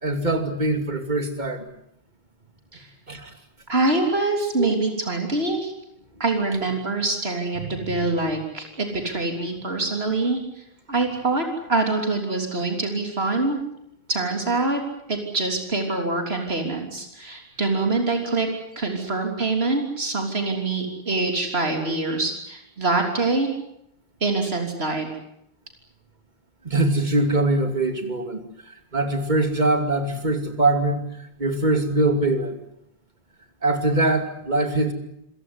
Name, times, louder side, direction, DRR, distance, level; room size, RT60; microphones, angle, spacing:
voice 1, 0.0-1.7 3.1-3.3 4.6-4.7 7.7-8.1 26.6-31.0 31.4-32.5 33.6-34.9, right 2 dB, 45° right, 7 dB, 2.9 m, -23 dB
voice 2, 3.7-5.7 6.2-10.4 10.9-13.6 14.1-14.8 15.1-18.5 18.8-23.5 24.2-25.1, right 3 dB, 85° right, 3 dB, 3.7 m, -24 dB
27.5 x 17.0 x 9.6 m, 0.76 s
omnidirectional pair, 1.0 m